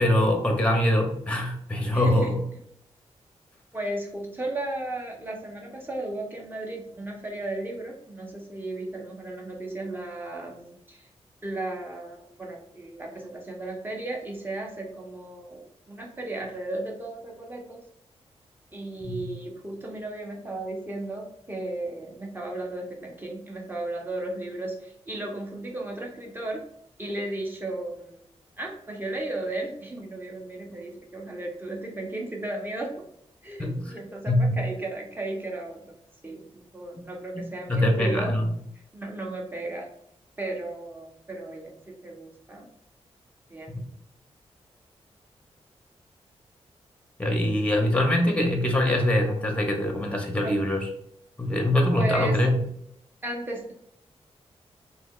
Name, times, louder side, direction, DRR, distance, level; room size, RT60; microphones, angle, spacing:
voice 1, 0.0-2.4 19.0-19.2 33.6-33.9 34.3-34.6 37.3-38.4 47.2-50.8 51.4-52.6, left 1 dB, 10° left, 2 dB, 0.7 m, -23 dB
voice 2, 1.9-2.4 3.7-11.1 11.4-17.8 18.7-26.6 27.0-33.1 33.4-36.0 36.2-38.4 38.7-39.9 40.4-41.7 42.0-42.7 43.5-43.8 50.4-50.7 51.9-52.4 53.2-53.7, right 2 dB, 20° right, -1 dB, 0.8 m, -35 dB
3.3 x 2.7 x 2.4 m, 0.73 s
cardioid pair, 85°, 11 cm